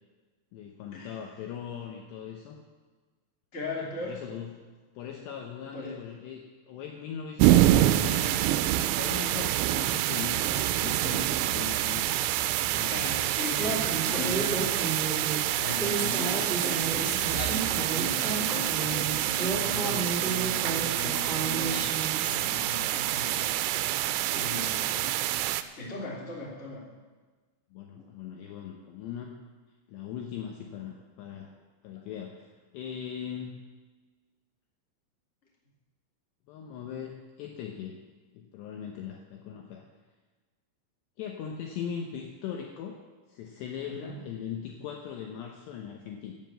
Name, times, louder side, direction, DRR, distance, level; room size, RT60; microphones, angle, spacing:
voice 1, 0.5-2.6 4.0-4.6 5.0-12.2 12.7-13.2 13.6-14.8 24.5-25.1 27.7-29.4 29.9-31.5 31.8-32.5 32.7-33.6 36.5-37.9 38.3-39.8 41.2-43.0 43.3-46.3, left 8 dB, 75° left, 1 dB, 2.7 m, -40 dB
voice 2, 3.5-4.2 5.7-6.0 12.9-13.9 14.1-15.2 15.6-21.9 22.3-24.0 24.3-25.0 25.8-26.8 27.9-28.0 43.9-44.2, left 2 dB, 20° left, -4 dB, 2.0 m, -38 dB
sound 1, 7.4-25.6, right 14 dB, 85° right, 2.8 m, -27 dB
Female speech woman speaking, 13.6-22.4, right 4 dB, 30° right, 0.9 m, -33 dB
16.0 x 7.5 x 7.6 m, 1.4 s
omnidirectional pair, 5.8 m